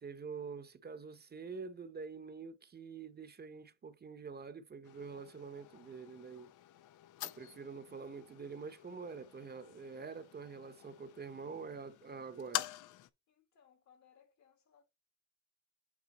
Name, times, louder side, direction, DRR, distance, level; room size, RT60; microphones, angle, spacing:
voice 1, 0.0-6.5 7.2-12.7, right 5 dB, 35° right, 0.8 m, -46 dB
sound 1, 4.8-13.1, left 14 dB, 85° left, 0.6 m, -47 dB
voice 2, 13.3-14.8, left 8 dB, 70° left, 2.2 m, -66 dB
8.5 x 3.8 x 4.1 m
cardioid pair, 90°, 30 cm